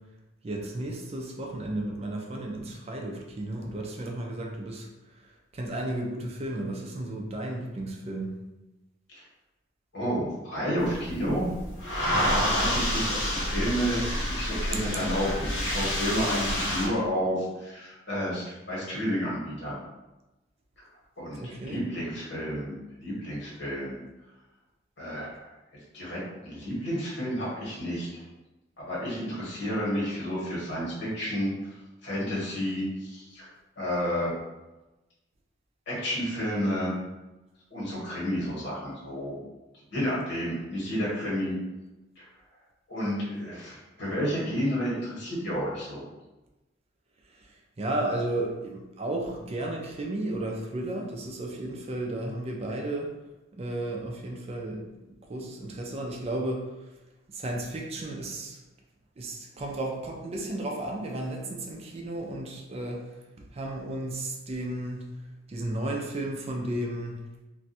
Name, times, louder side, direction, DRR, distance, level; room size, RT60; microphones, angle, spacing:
voice 1, 0.4-8.4 21.4-21.9 47.2-53.2 53.5-56.9 57.3-58.6 59.2-65.1 65.5-67.1, right 1 dB, 35° right, 0 dB, 0.4 m, -34 dB
voice 2, 9.9-11.5 12.1-19.8 21.2-22.8 23.0-24.0 25.0-25.5 25.9-28.2 28.8-31.8 32.0-33.5 33.8-34.3 35.9-36.9 37.7-39.4 39.9-41.5 42.2-42.3 42.9-46.0, equal, 65° left, -7 dB, 1.4 m, -31 dB
sound 1, 10.8-16.9, equal, 80° left, 1.2 m, -29 dB
2.6 x 2.2 x 4.0 m, 1.1 s
head